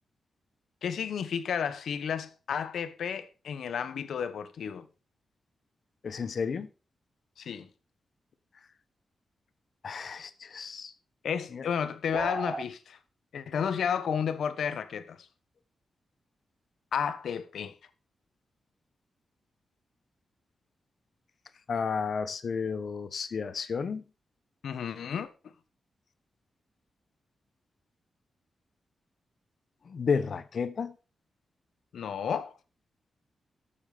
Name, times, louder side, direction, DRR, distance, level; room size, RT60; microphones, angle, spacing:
voice 1, 0.8-4.9 7.4-7.7 11.2-13.0 13.3-15.2 16.9-17.7 24.6-25.3 31.9-32.5, left 7 dB, 80° left, 1.2 m, -32 dB
voice 2, 6.0-6.7 9.8-10.9 11.5-11.6 21.7-24.0 29.9-30.9, left 5 dB, 50° left, 1.0 m, -32 dB
sound 1, 12.1-12.7, right 3 dB, 25° right, 0.5 m, -34 dB
12.5 x 7.2 x 5.0 m
wide cardioid pair, 155°, 0 cm